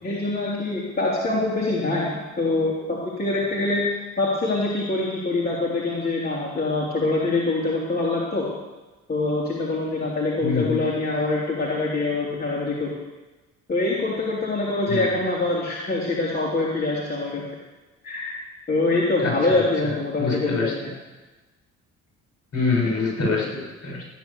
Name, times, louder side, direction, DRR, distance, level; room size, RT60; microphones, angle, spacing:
voice 1, 0.0-3.9 4.2-8.5 9.1-12.9 13.7-17.5 18.0-18.3 18.7-20.9, left 2 dB, 30° left, -5 dB, 3.2 m, -24 dB
voice 2, 10.4-10.8 14.9-15.0 19.2-19.3 20.2-20.7 22.5-24.0, left 4 dB, 55° left, -1 dB, 6.6 m, -25 dB
15.0 x 10.0 x 7.0 m, 1.2 s
cardioid pair, 90°, 30 cm